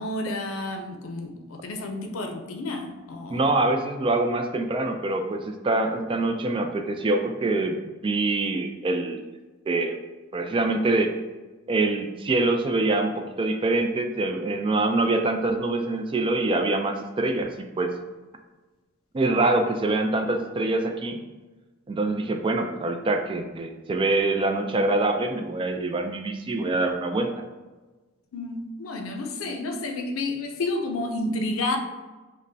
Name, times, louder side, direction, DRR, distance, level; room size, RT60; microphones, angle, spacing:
voice 1, 0.0-3.5 28.3-31.8, left 2 dB, 85° left, 4 dB, 0.5 m, -30 dB
voice 2, 3.3-7.8 8.0-9.2 9.7-10.0 10.3-11.1 11.7-17.9 19.1-21.2 21.9-27.3, right 2 dB, 25° right, 5 dB, 0.3 m, -25 dB
5.1 x 2.1 x 2.7 m, 1.2 s
head